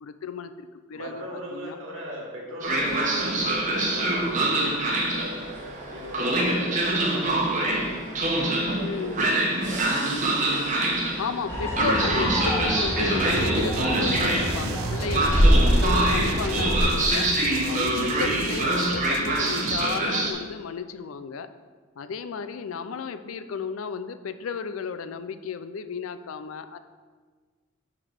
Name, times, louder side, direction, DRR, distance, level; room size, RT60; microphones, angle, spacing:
voice 1, 0.0-1.2 1.5-1.8 8.8-9.2 11.2-17.3 17.7-21.5 22.0-26.8, left 5 dB, 75° left, 11 dB, 0.4 m, -33 dB
voice 2, 0.9-4.6 5.1-7.9 8.4-10.1 16.3-16.5, equal, 70° right, -3 dB, 1.8 m, -38 dB
Train, 2.6-20.3, right 2 dB, 40° right, 1.1 m, -25 dB
sound 1, 11.5-16.9, equal, 15° left, 1.4 m, -25 dB
sound 2, 13.2-20.0, right 6 dB, 90° right, 0.4 m, -36 dB
6.4 x 3.9 x 6.3 m, 1.5 s
head